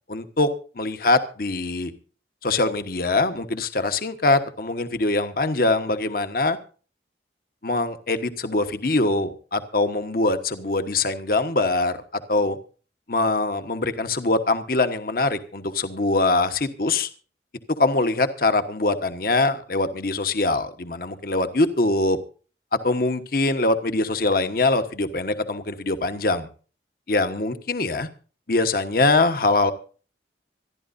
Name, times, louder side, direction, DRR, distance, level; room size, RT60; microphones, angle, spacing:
voice 1, 0.1-0.5 0.8-1.9 2.4-6.6 7.6-12.6 13.1-17.1 17.8-22.2 22.7-26.5 27.1-28.1 28.5-29.7, left 2 dB, 55° left, 9 dB, 1.2 m, -23 dB
25.5 x 11.5 x 2.7 m, 0.38 s
head